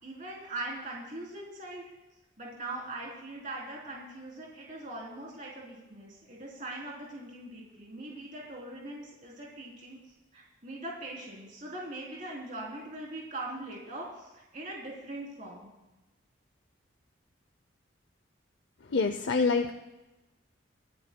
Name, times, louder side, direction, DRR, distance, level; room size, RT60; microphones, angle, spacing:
voice 1, 0.0-1.8 2.4-10.0 10.3-15.7, right 2 dB, 40° right, -4 dB, 3.4 m, -41 dB
voice 2, 18.9-19.7, left 4 dB, 65° left, 6 dB, 0.6 m, -26 dB
27.0 x 13.5 x 2.2 m, 1.0 s
head